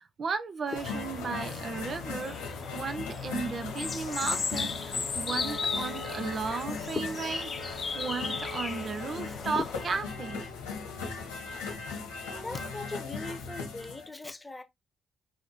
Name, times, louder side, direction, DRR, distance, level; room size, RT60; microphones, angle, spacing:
voice 1, 0.0-2.4 2.7-10.5, right 5 dB, 50° right, 0.4 m, -35 dB
sound 1, 0.7-14.1, left 5 dB, 80° left, 1.3 m, -38 dB
sound 2, 0.7-10.0, left 4 dB, 40° left, 0.7 m, -36 dB
Wind instrument woodwind instrument, 5.3-9.4, right 1 dB, 25° right, 1.7 m, -44 dB
voice 2, 12.3-14.6, left 2 dB, 15° left, 0.9 m, -40 dB
5.6 x 2.7 x 2.9 m
figure-of-eight pair, 40°, 0 cm